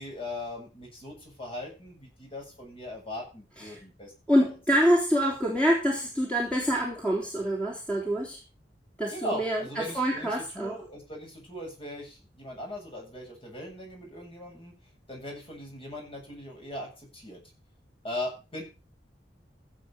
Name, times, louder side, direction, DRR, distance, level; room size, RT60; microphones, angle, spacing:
voice 1, 0.0-4.1 9.1-14.8 15.1-17.4 18.0-18.6, left 1 dB, 30° left, 0 dB, 8.0 m, -39 dB
voice 2, 4.3-8.4 9.0-10.8, equal, 5° left, -3 dB, 3.5 m, -26 dB
16.0 x 8.2 x 5.2 m, 0.31 s
head